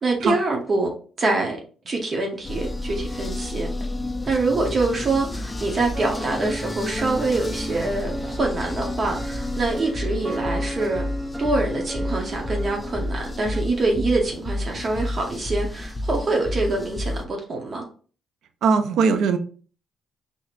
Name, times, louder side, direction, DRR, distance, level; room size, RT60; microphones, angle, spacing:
voice 1, 0.0-0.9 1.2-1.6 1.8-3.7 4.2-11.0 11.4-17.8, right 3 dB, 40° right, 0.9 m, -25 dB
sound 1, 2.4-17.2, left 1 dB, 15° left, 0.4 m, -30 dB
sound 2, 5.9-13.6, right 1 dB, 10° right, 0.8 m, -35 dB
voice 2, 18.6-19.4, right 5 dB, 80° right, 0.5 m, -19 dB
4.2 x 2.8 x 2.5 m
cardioid pair, 90°, 0 cm